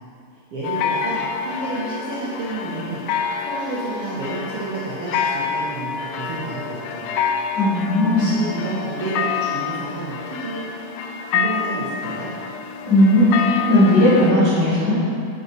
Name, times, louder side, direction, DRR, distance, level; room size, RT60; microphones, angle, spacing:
voice 1, 0.5-7.1 8.1-10.9 11.3-12.3, right 3 dB, 75° right, -7 dB, 1.3 m, -30 dB
sound 1, 0.6-14.3, left 6 dB, 80° left, 1.9 m, -27 dB
voice 2, 7.5-8.4 12.9-14.9, left 1 dB, 40° left, -12 dB, 1.8 m, -16 dB
8.9 x 6.3 x 4.1 m, 2.3 s
omnidirectional pair, 4.1 m